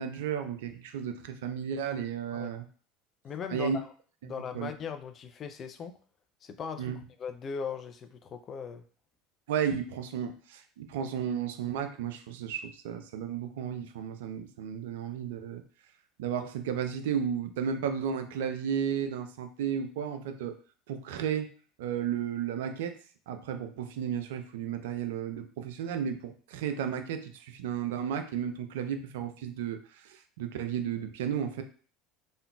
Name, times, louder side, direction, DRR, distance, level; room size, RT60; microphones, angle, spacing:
voice 1, 0.0-2.7 3.5-3.8 4.2-4.7 6.8-7.0 9.5-15.6 16.2-20.5 20.9-21.5 21.8-23.0 23.3-31.6, right 8 dB, 65° right, 8 dB, 0.3 m, -33 dB
voice 2, 3.2-3.9 4.2-6.0 6.4-8.8, left 6 dB, 35° left, 7 dB, 0.3 m, -39 dB
3.6 x 2.1 x 2.3 m, 0.41 s
figure-of-eight pair, 70°, 0 cm